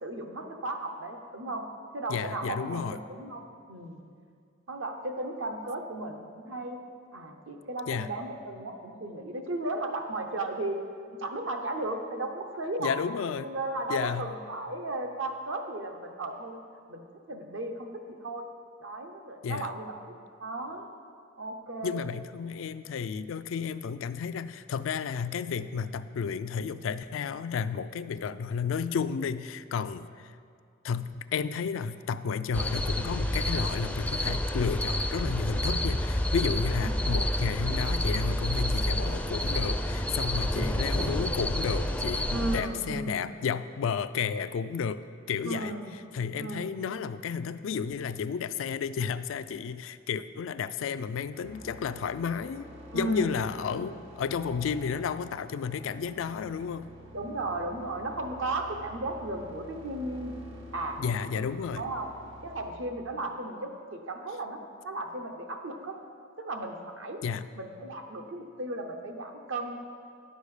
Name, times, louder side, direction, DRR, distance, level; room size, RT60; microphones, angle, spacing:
voice 1, 0.0-1.7 1.9-4.0 4.7-6.8 7.1-10.8 11.2-13.0 13.4-16.6 16.9-18.5 18.8-20.9 21.4-22.0 36.8-37.1 40.5-40.9 42.3-43.3 45.4-45.9 46.4-46.8 52.9-53.4 53.7-54.0 57.1-60.3 60.7-61.0 61.8-62.1 62.4-66.0 66.4-67.2 67.5-69.8, right 2 dB, 70° right, 4 dB, 0.9 m, -35 dB
voice 2, 2.1-3.0 7.9-8.1 12.8-13.5 13.9-14.3 19.4-19.7 21.8-30.3 30.8-45.7 46.1-52.7 52.9-56.9 61.0-61.9 67.2-67.5, left 6 dB, 75° left, 13 dB, 0.3 m, -32 dB
sound 1, 32.5-42.6, left 1 dB, 5° left, 0.4 m, -29 dB
sound 2, 51.3-62.7, equal, 85° right, 1.9 m, -48 dB
10.0 x 6.7 x 4.9 m, 2.2 s
head